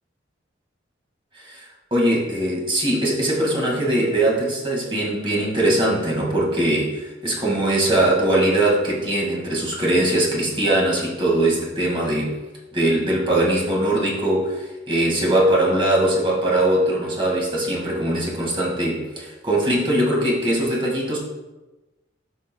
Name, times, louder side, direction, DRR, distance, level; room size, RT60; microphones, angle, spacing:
voice 1, 1.9-12.3 12.7-21.2, right 1 dB, 30° right, -3 dB, 2.1 m, -21 dB
12.5 x 5.1 x 2.3 m, 1.1 s
head